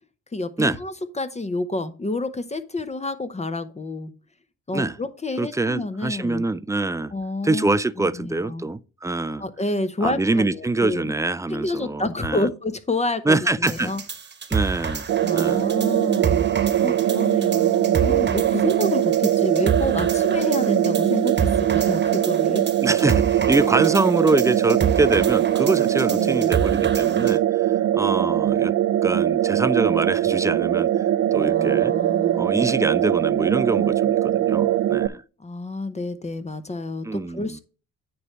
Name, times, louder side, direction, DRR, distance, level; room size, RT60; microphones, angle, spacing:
voice 1, 0.3-4.1 4.7-6.4 7.1-8.7 9.4-11.1 11.5-14.0 15.2-16.5 16.8-22.7 23.8-24.0 26.1-26.5 31.4-32.5 35.4-37.6, left 2 dB, 20° left, 0.8 m, -29 dB
voice 2, 5.4-7.1 7.4-9.4 10.0-12.5 13.3-13.9 14.5-15.0 15.3-15.7 16.7-17.0 22.8-28.7 29.0-30.9 31.3-31.9 32.4-35.2 37.0-37.6, right 2 dB, 10° right, 0.4 m, -24 dB
sound 1, 13.7-27.4, right 6 dB, 35° right, 1.2 m, -30 dB
sound 2, 15.1-35.1, right 12 dB, 55° right, 0.6 m, -21 dB
9.5 x 3.2 x 6.1 m
cardioid pair, 90°, 30 cm